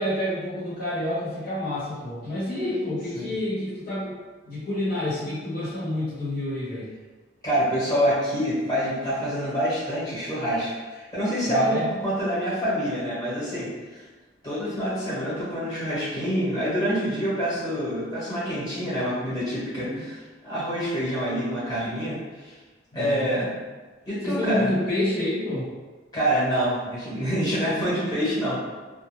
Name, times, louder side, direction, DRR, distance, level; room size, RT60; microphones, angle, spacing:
voice 1, 0.0-4.1 4.4-6.9 11.5-11.9 19.8-20.0 22.9-23.4 24.2-25.8, left 1 dB, 55° left, -10 dB, 1.0 m, -28 dB
voice 2, 7.4-14.0 14.4-20.2 20.4-22.5 22.9-23.5 24.0-24.7 26.1-28.6, equal, 20° left, -10 dB, 1.1 m, -26 dB
2.4 x 2.1 x 3.1 m, 1.3 s
head